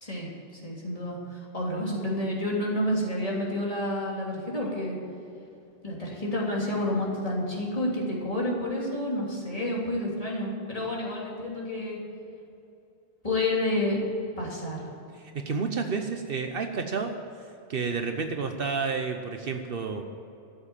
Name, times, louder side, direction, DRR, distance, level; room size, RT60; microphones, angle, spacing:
voice 1, 0.6-5.0 5.8-12.0 13.2-14.0 14.4-14.9, left 1 dB, 35° left, -4 dB, 3.3 m, -29 dB
voice 2, 15.1-17.2 17.7-20.0, right 5 dB, 65° right, 5 dB, 1.1 m, -30 dB
14.0 x 7.4 x 8.9 m, 2.8 s
omnidirectional pair, 1.0 m